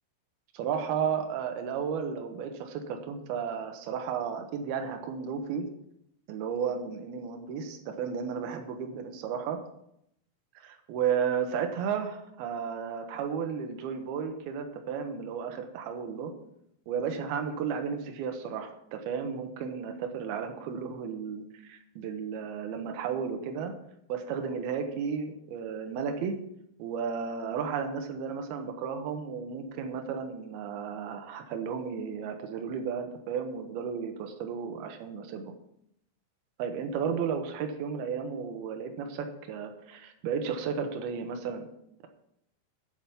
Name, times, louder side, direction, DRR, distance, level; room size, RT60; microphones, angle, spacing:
voice 1, 0.5-5.7 6.3-9.6 10.5-16.3 16.9-23.7 24.1-26.4 26.8-35.5 36.6-41.7, right 7 dB, 75° right, 5 dB, 2.4 m, -33 dB
8.6 x 7.9 x 7.1 m, 0.76 s
omnidirectional pair, 5.8 m